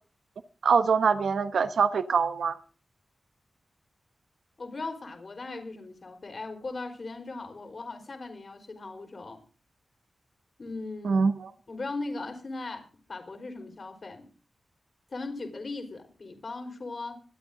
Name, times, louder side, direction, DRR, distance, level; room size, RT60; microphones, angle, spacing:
voice 1, 0.6-2.6 11.0-11.5, right 5 dB, 85° right, 10 dB, 1.0 m, -24 dB
voice 2, 4.6-9.4 10.6-11.3 11.7-14.3 15.1-17.2, left 3 dB, 60° left, 5 dB, 4.8 m, -38 dB
25.0 x 9.2 x 3.9 m, 0.37 s
cardioid pair, 45°, 0 cm